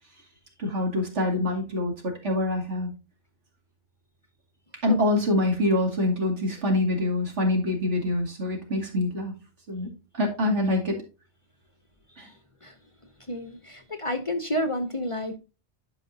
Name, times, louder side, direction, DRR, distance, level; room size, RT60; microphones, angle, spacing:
voice 1, 0.6-2.9 4.8-9.4 9.7-11.0 12.2-12.3, left 1 dB, 80° right, 1 dB, 2.6 m, -25 dB
voice 2, 13.3-15.4, equal, 35° left, 8 dB, 0.6 m, -30 dB
11.5 x 4.9 x 2.7 m, 0.30 s
omnidirectional pair, 1.2 m